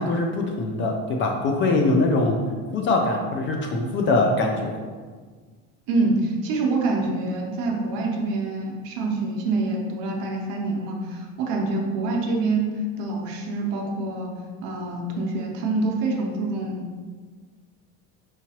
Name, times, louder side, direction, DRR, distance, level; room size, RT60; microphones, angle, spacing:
voice 1, 0.0-2.4 2.7-4.7, left 2 dB, 35° left, 2 dB, 0.4 m, -22 dB
voice 2, 5.9-12.7 13.0-14.3 14.6-17.0, right 3 dB, 70° right, 0 dB, 0.9 m, -26 dB
4.8 x 3.0 x 2.9 m, 1.5 s
cardioid pair, 155°, 35 cm